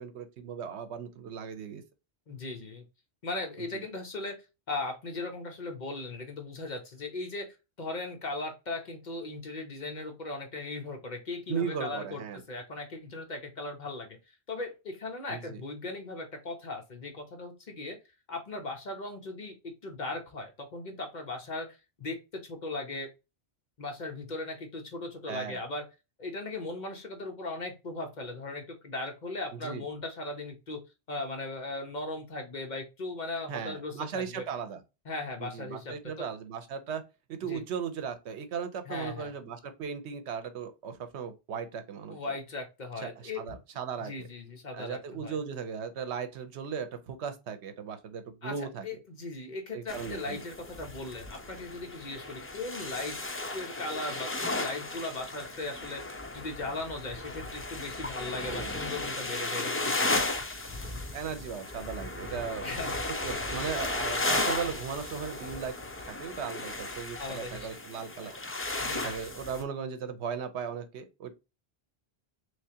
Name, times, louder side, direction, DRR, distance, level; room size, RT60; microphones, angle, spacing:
voice 1, 0.0-1.8 3.6-3.8 11.5-12.4 15.3-15.6 25.3-25.6 29.5-29.8 33.5-34.8 35.4-37.0 37.3-42.2 43.0-43.1 43.4-44.3 44.7-48.8 49.7-50.4 58.5-58.7 61.1-62.7 63.2-65.7 66.2-68.3 69.0-71.3, right 7 dB, 90° right, 1.0 m, -37 dB
voice 2, 2.3-2.8 3.2-4.4 4.7-18.0 18.3-23.1 23.8-25.8 26.2-30.8 31.1-34.5 35.0-36.3 37.4-37.6 38.9-39.3 42.1-43.5 44.0-45.4 48.4-53.2 53.5-60.2 62.6-63.0 67.2-67.7 68.8-69.1, left 2 dB, 45° left, 0.9 m, -38 dB
sound 1, 49.9-69.6, left 2 dB, 25° left, 0.3 m, -35 dB
3.4 x 3.2 x 2.7 m
omnidirectional pair, 1.1 m